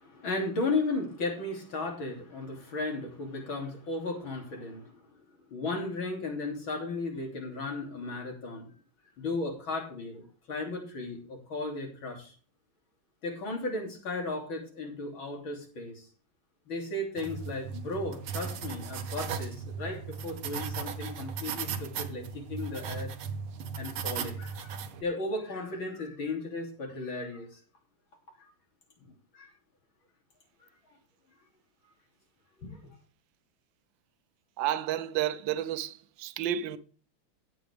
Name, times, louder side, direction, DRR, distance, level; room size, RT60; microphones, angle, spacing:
voice 1, 0.0-8.7 9.2-12.3 13.2-16.1 16.7-23.1 23.8-27.6 28.4-28.5 29.3-29.5 31.8-31.9 32.6-33.0, left 2 dB, 70° left, 3.8 m, -35 dB
sound 1, 17.2-25.0, right 6 dB, 90° right, 2.0 m, -37 dB
voice 2, 34.6-36.8, right 11 dB, 70° right, 1.5 m, -31 dB
15.0 x 9.0 x 3.5 m
omnidirectional pair, 2.3 m